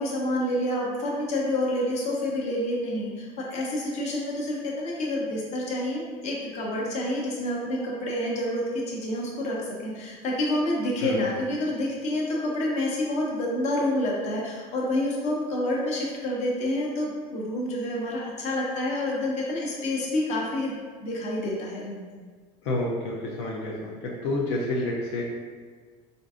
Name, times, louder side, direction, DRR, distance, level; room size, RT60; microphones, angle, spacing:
voice 1, 0.0-20.7 21.0-22.1, left 1 dB, 50° left, -3 dB, 0.8 m, -28 dB
voice 2, 22.6-25.2, left 2 dB, 80° left, -3 dB, 0.5 m, -29 dB
3.7 x 2.6 x 2.4 m, 1.5 s
supercardioid pair, 115°, 15 cm